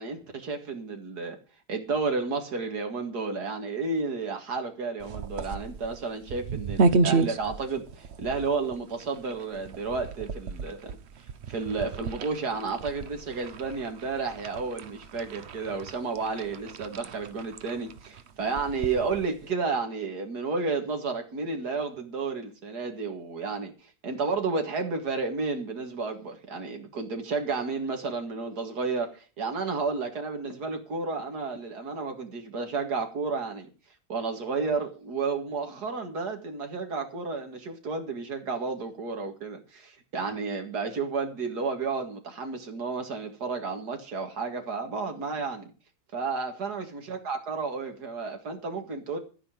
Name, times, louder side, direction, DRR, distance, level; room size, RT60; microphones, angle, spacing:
voice 1, 0.0-1.4 1.7-11.0 11.5-23.7 24.0-33.7 34.1-45.7 46.1-49.2, right 4 dB, 85° right, 4 dB, 2.5 m, -32 dB
sound 1, 5.0-19.5, right 4 dB, 50° right, 0.9 m, -32 dB
13.5 x 5.5 x 9.0 m, 0.35 s
omnidirectional pair, 1.7 m